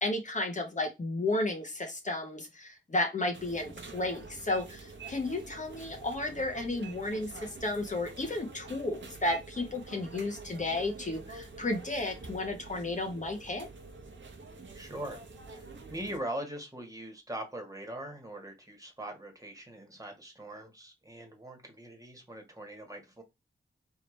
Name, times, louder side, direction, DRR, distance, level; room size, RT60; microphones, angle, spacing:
voice 1, 0.0-13.7, left 2 dB, 40° left, 1.0 m, -33 dB
sound 1, 3.3-16.2, right 3 dB, 75° right, 1.1 m, -47 dB
voice 2, 14.7-15.2 15.5-23.2, right 1 dB, 15° right, 1.6 m, -41 dB
4.7 x 3.0 x 3.2 m
wide cardioid pair, 80°, 19 cm